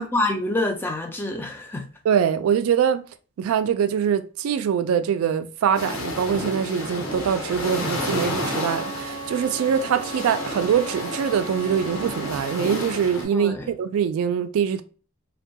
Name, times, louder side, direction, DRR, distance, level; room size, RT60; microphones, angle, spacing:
voice 1, 0.0-1.9 13.3-13.7, left 2 dB, 10° left, 0.3 m, -26 dB
voice 2, 2.0-3.0 3.4-14.8, right 8 dB, 80° right, 0.3 m, -23 dB
sound 1, 5.7-13.2, left 1 dB, 75° left, 1.1 m, -31 dB
Bowed string instrument, 7.9-12.7, right 3 dB, 55° left, 0.7 m, -37 dB
2.2 x 2.2 x 2.7 m
head